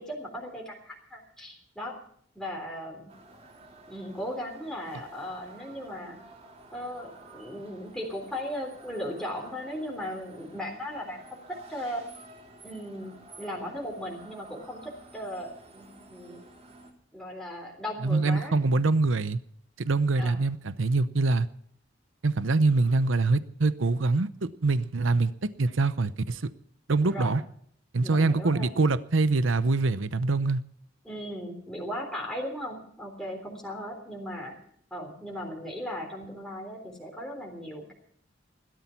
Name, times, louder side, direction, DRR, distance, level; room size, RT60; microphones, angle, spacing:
voice 1, 0.0-1.9 2.4-3.1 3.9-6.2 6.7-11.4 11.7-12.0 12.6-16.4 17.1-18.5 20.2-20.4 27.1-27.4 28.0-28.7 31.0-34.5 34.9-37.9, equal, 5° left, -1 dB, 3.6 m, -37 dB
sound 1, 3.1-16.9, right 2 dB, 35° right, 3.5 m, -52 dB
voice 2, 18.0-19.4 19.8-21.5 22.2-25.3 25.6-26.5 26.9-27.4 27.9-30.6, right 3 dB, 80° right, 14 dB, 0.8 m, -24 dB
17.0 x 12.5 x 5.8 m, 0.63 s
head